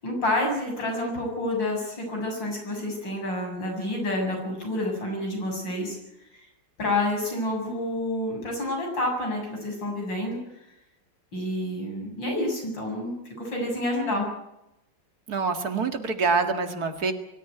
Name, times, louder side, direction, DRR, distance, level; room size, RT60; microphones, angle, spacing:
voice 1, 0.0-6.0 6.3-6.5 6.8-10.4 11.3-13.1 13.4-14.3, left 1 dB, 80° left, 1 dB, 8.1 m, -28 dB
voice 2, 15.3-17.1, right 4 dB, 55° right, 7 dB, 2.5 m, -26 dB
24.0 x 14.0 x 9.5 m, 0.87 s
omnidirectional pair, 2.0 m